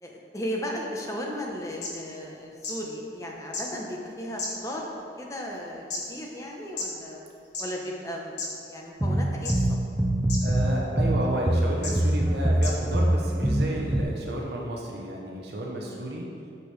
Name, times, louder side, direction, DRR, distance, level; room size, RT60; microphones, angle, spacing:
voice 1, 0.0-7.2 7.6-9.8 15.8-16.1, equal, 20° left, -1 dB, 0.8 m, -36 dB
sound 1, 1.5-1.6 1.8-1.9 2.6-2.7 3.5-3.6 4.4-4.8 5.5-6.0 6.8-6.9 7.4-7.6 8.4-8.5 9.4-9.8 10.3-10.4 11.2-11.3 11.8-11.9 12.6-12.7 13.6-13.7, left 3 dB, 80° left, 1.3 m, -32 dB
sound 2, 9.0-10.7 11.0-14.0, right 1 dB, 10° right, 0.4 m, -23 dB
voice 2, 10.4-16.2, right 1 dB, 70° right, -2 dB, 0.9 m, -32 dB
8.1 x 6.8 x 3.2 m, 2.5 s
head